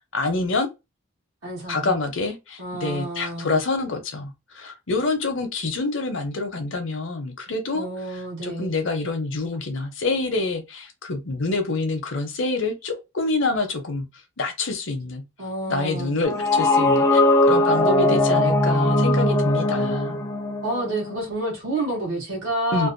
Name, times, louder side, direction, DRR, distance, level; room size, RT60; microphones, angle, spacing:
voice 1, 0.1-0.7 1.7-7.9 8.4-14.1 14.4-15.2 15.7-20.2 22.7-22.9, left 3 dB, 60° left, 0.7 m, -26 dB
voice 2, 1.4-2.0 2.6-3.6 7.7-8.7 15.4-16.2 20.6-22.9, right 1 dB, 70° right, 1.0 m, -29 dB
sound 1, 16.2-21.2, left 1 dB, 15° left, 0.4 m, -20 dB
2.6 x 2.2 x 2.5 m
head